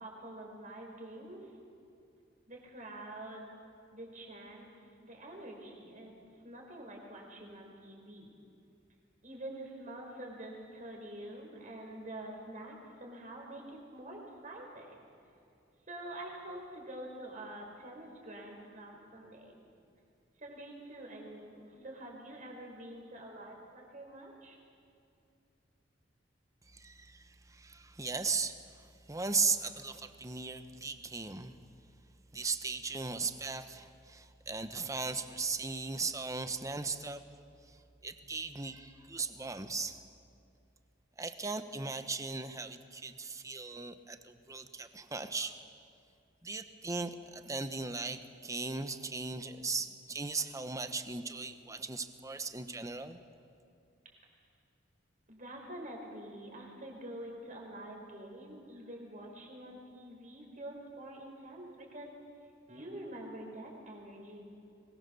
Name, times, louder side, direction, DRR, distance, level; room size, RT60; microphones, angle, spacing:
voice 1, 0.0-1.4 2.5-3.5 3.9-4.7 5.0-6.1 6.4-8.3 9.2-15.1 15.9-19.5 20.4-24.6 55.3-62.1 62.7-64.4, right 1 dB, 45° right, 0 dB, 5.0 m, -46 dB
voice 2, 26.7-31.5 32.3-37.2 38.0-40.0 41.2-45.5 46.4-53.2, right 4 dB, 20° right, 9 dB, 1.0 m, -37 dB
24.0 x 20.0 x 7.0 m, 2.5 s
head